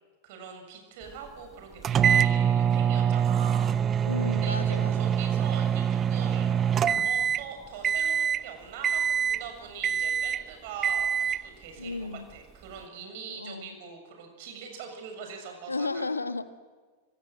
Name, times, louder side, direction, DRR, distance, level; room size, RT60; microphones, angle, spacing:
voice 1, 0.2-6.6 7.0-16.1, right 6 dB, 50° right, 5 dB, 7.1 m, -43 dB
sound 1, 1.8-7.5 7.8-8.4 8.8-9.5 9.8-10.4 10.8-11.5, right 8 dB, 25° right, 0.8 m, -25 dB
voice 2, 4.0-5.1 11.8-12.2 13.3-13.7 15.7-16.5, left 3 dB, 80° left, 12 dB, 1.3 m, -33 dB
25.5 x 25.5 x 7.9 m, 1.4 s
figure-of-eight pair, 90°, 0 cm